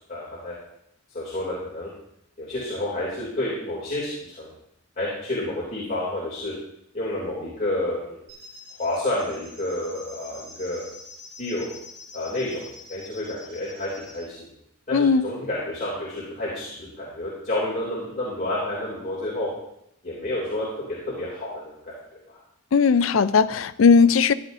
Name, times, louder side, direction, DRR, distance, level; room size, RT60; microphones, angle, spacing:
voice 1, 0.1-0.5 1.1-1.9 2.4-4.5 5.0-6.5 6.9-8.3 8.8-10.8 11.4-11.7 12.1-14.4 14.9-19.5 20.0-22.4, left 1 dB, 40° left, -6 dB, 2.8 m, -30 dB
sound 1, 8.3-14.2, left 2 dB, 55° right, 4.9 m, -46 dB
voice 2, 14.9-15.2 22.7-24.3, left 5 dB, 70° left, 14 dB, 0.4 m, -17 dB
14.5 x 10.5 x 2.7 m, 0.78 s
head